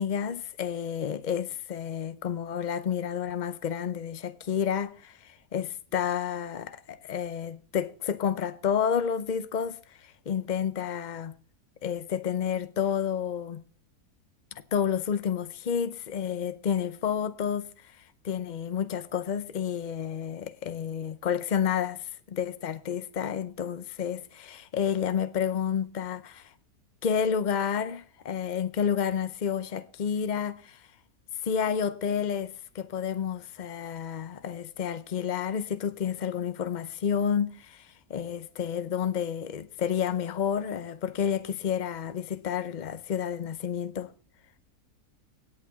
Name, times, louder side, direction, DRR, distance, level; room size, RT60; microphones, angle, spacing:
voice 1, 0.0-11.3 11.8-13.6 14.7-26.5 27.0-30.8 31.4-44.1, left 8 dB, 65° left, 0.4 m, -30 dB
17.0 x 8.9 x 3.5 m
omnidirectional pair, 1.7 m